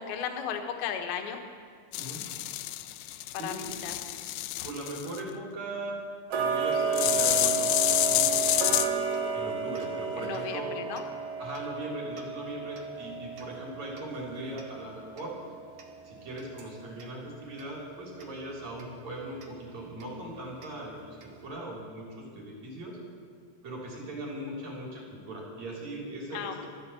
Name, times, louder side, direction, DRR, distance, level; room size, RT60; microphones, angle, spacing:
voice 1, 0.0-1.4 3.4-3.5 3.8-3.9 10.2-11.1 26.3-26.7, left 8 dB, 70° left, 5 dB, 2.7 m, -35 dB
sound 1, 1.9-5.2 6.9-8.9, left 15 dB, 85° left, 2.7 m, -28 dB
voice 2, 1.9-2.3 3.3-3.9 4.6-6.0 6.4-8.6 9.3-10.7 11.4-15.4 16.0-21.2 21.4-23.0 23.6-26.7, right 1 dB, 45° right, -2 dB, 4.0 m, -39 dB
Tick-tock, 6.3-17.2 17.6-17.7 18.2-18.3 18.8-18.9 19.4-19.5 20.0-20.1 20.6-20.7 21.2-21.3, right 5 dB, 60° right, 2.1 m, -33 dB
14.5 x 12.0 x 6.9 m, 2.1 s
omnidirectional pair, 5.0 m